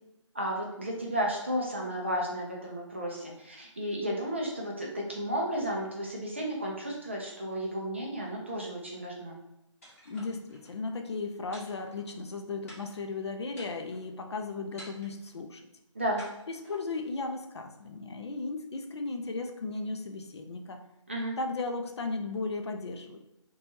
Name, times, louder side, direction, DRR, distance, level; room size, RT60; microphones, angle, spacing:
voice 1, 0.3-9.4 15.9-16.2 21.1-21.4, equal, 25° right, -2 dB, 0.3 m, -33 dB
sound 1, 9.8-10.7 11.5-12.3 12.7-13.1 13.5-14.1 14.8-15.3 16.2-17.1, equal, 25° left, 1.0 m, -51 dB
voice 2, 10.1-15.6 16.5-20.8 21.4-23.2, left 3 dB, 55° left, 4 dB, 0.4 m, -36 dB
2.9 x 2.2 x 2.8 m, 0.89 s
hypercardioid pair, 170°, 16 cm